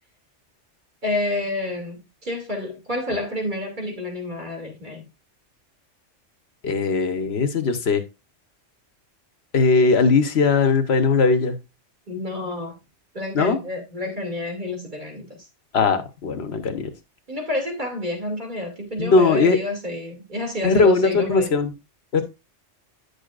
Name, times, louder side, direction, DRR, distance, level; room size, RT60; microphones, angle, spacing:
voice 1, 1.0-5.1 12.1-12.8 13.1-15.3 17.3-21.5, left 2 dB, 40° right, 2.6 m, -29 dB
voice 2, 6.6-8.0 9.5-11.6 13.3-13.6 15.7-16.9 19.0-19.6 20.6-21.7 22.1-22.2, left 4 dB, 60° left, 1.3 m, -19 dB
9.7 x 6.6 x 2.4 m
omnidirectional pair, 1.3 m